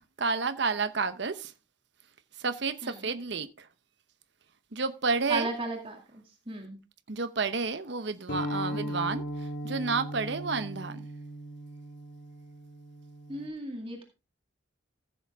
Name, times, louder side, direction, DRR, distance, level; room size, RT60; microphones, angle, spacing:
voice 1, 0.2-1.5 2.4-3.7 4.7-5.5 7.1-11.0, right 4 dB, 60° right, 0.8 m, -30 dB
voice 2, 5.3-6.0 6.5-6.8 8.7-8.9 13.3-14.0, right 2 dB, 25° right, 2.1 m, -34 dB
sound 1, 8.3-13.5, equal, 65° left, 2.2 m, -37 dB
15.0 x 7.1 x 3.5 m
head